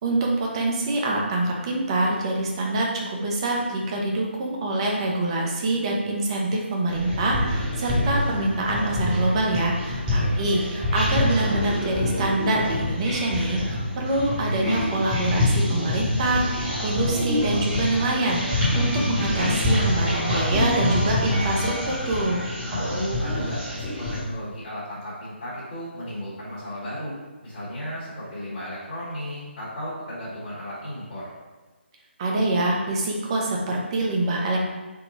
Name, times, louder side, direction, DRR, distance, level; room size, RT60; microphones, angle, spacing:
voice 1, 0.0-22.4 32.2-34.6, right 2 dB, 25° right, -1 dB, 0.6 m, -25 dB
sound 1, 6.9-24.2, left 1 dB, 10° right, 1.0 m, -26 dB
voice 2, 9.9-10.4 22.7-27.1 27.4-31.3, equal, 35° left, -9 dB, 1.2 m, -35 dB
3.7 x 2.2 x 3.9 m, 1.2 s
figure-of-eight pair, 150°, 6 cm